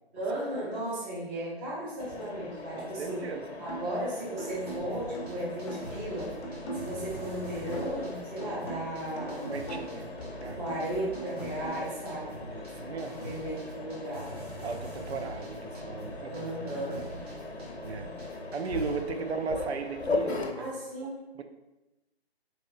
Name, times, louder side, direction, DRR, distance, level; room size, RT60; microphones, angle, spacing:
voice 1, 0.1-3.3 3.6-9.5 10.6-12.4 13.1-14.3 16.3-17.0 19.1-19.4 20.5-21.2, right 1 dB, 10° right, -8 dB, 0.7 m, -35 dB
Mechanisms, 2.0-20.5, left 3 dB, 90° left, 0.7 m, -40 dB
voice 2, 2.8-3.4 9.5-10.1 10.4-10.6 12.4-13.2 14.6-16.8 17.8-18.1 18.5-20.7 21.0-21.1 21.3-21.4, right 5 dB, 85° right, 7 dB, 0.5 m, -37 dB
sound 1, 3.7-4.0 4.4-8.1 8.4-11.7, right 1 dB, 25° left, 0.6 m, -42 dB
sound 2, 4.5-19.0, right 1 dB, 40° right, 1.0 m, -45 dB
4.1 x 3.1 x 2.5 m, 1.0 s
figure-of-eight pair, 150°, 32 cm